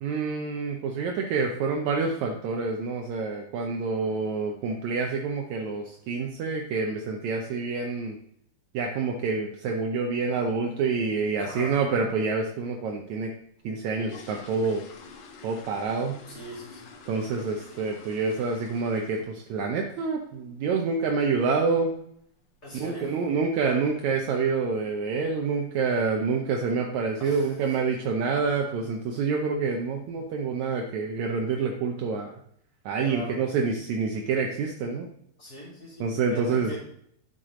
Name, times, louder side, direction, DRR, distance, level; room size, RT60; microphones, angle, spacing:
voice 1, 0.0-8.2 8.7-13.3 13.6-14.8 15.4-16.2 17.1-21.9 22.7-32.3 32.8-35.1 36.0-36.7, right 4 dB, 75° right, 2 dB, 1.7 m, -27 dB
voice 2, 11.4-11.9 16.3-16.9 22.6-23.2 27.2-27.8 33.0-33.4 35.4-36.8, equal, 25° left, -5 dB, 3.2 m, -41 dB
sound 1, 13.6-19.5 19.8-20.1 20.4-20.5 20.9-21.0 21.4-21.6 21.9-22.0 22.6-22.7 22.9-23.1 23.6-23.9 24.2-24.3 24.7-24.9 25.2-25.3 25.7-25.8 26.4-26.8 27.1-27.4 27.8-27.9 28.3-28.4 29.2-29.3 29.7-30.2 30.6-30.7, left 4 dB, 75° left, 2.9 m, -48 dB
10.5 x 6.8 x 3.7 m, 0.70 s
omnidirectional pair, 4.2 m